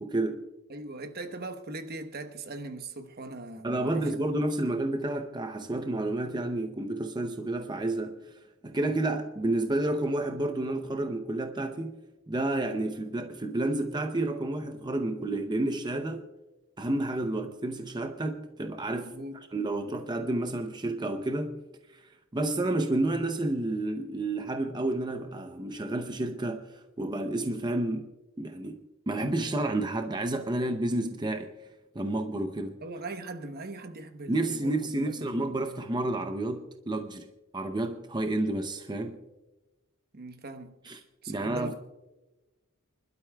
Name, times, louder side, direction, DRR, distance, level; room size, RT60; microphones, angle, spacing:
voice 1, 0.0-0.5 3.6-8.2 8.6-12.0 12.3-16.2 16.8-19.1 19.5-21.7 21.9-28.1 28.4-31.5 31.9-32.8 34.3-37.3 37.5-39.2 40.8-41.0 41.3-41.7, right 2 dB, 20° right, 0.7 m, -30 dB
voice 2, 0.7-4.1 18.9-19.4 32.8-35.5 40.1-40.7 41.2-41.7, right 2 dB, 50° right, 1.0 m, -40 dB
29.0 x 12.0 x 2.3 m
head